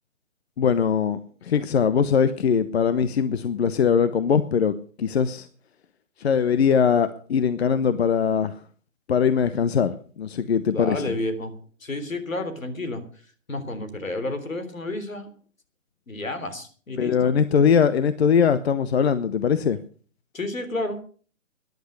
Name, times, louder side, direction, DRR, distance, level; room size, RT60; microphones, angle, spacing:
voice 1, 0.6-5.5 6.2-8.6 9.1-11.0 17.0-19.8, left 7 dB, 50° left, 14 dB, 0.9 m, -21 dB
voice 2, 10.7-11.5 11.8-13.0 13.5-15.3 16.1-17.4 20.3-21.0, left 2 dB, 80° left, 10 dB, 3.5 m, -31 dB
14.0 x 11.0 x 6.6 m, 0.43 s
figure-of-eight pair, 140°, 39 cm